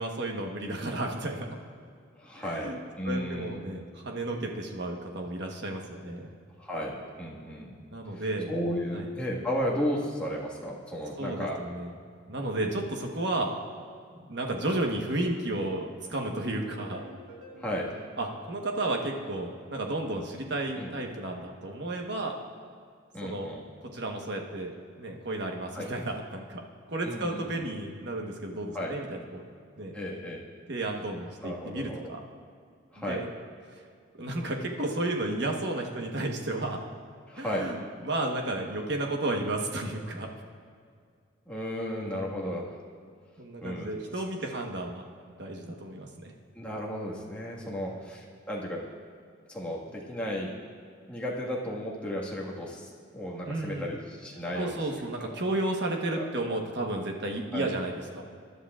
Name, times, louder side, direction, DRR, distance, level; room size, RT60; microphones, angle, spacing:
voice 1, 0.0-1.5 2.4-2.8 3.0-6.3 7.9-8.5 8.9-9.1 11.2-11.9 12.3-13.6 14.2-17.0 18.2-22.4 23.2-23.5 23.8-24.7 25.0-26.6 26.9-29.4 29.8-29.9 30.7-32.2 33.1-33.3 34.1-36.8 37.4-40.3 41.9-42.5 43.4-45.1 45.4-46.3 47.6-47.9 53.5-53.9 54.5-58.2, right 2 dB, 60° right, 2 dB, 1.2 m, -33 dB
voice 2, 2.2-3.8 6.6-7.7 8.1-11.6 12.6-12.8 17.6-17.9 20.8-20.9 23.1-23.6 25.7-25.9 27.0-27.4 28.7-28.9 29.9-30.4 31.4-32.1 32.9-33.2 37.3-37.7 41.5-42.8 43.6-43.9 46.5-48.8 49.5-50.5 51.1-54.8 56.1-56.6 57.5-57.7, equal, 5° left, -5 dB, 1.7 m, -34 dB
sound 1, 16.5-19.5, equal, 85° right, 1.7 m, -50 dB
21.5 x 11.0 x 2.5 m, 2.2 s
head